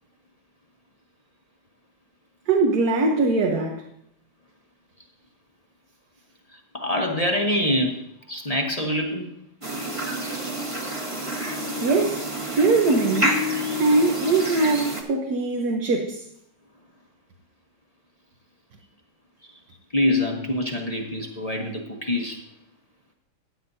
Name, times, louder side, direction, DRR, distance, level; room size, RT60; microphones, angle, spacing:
voice 1, 2.5-3.8 11.8-12.3 12.6-13.4 13.8-16.2, right 3 dB, 60° right, 1 dB, 1.4 m, -21 dB
voice 2, 6.7-9.3 19.9-22.4, left 1 dB, 25° left, 1 dB, 0.8 m, -25 dB
sound 1, 9.6-15.0, equal, 20° right, 1.2 m, -28 dB
14.5 x 9.3 x 2.7 m, 0.76 s
omnidirectional pair, 2.0 m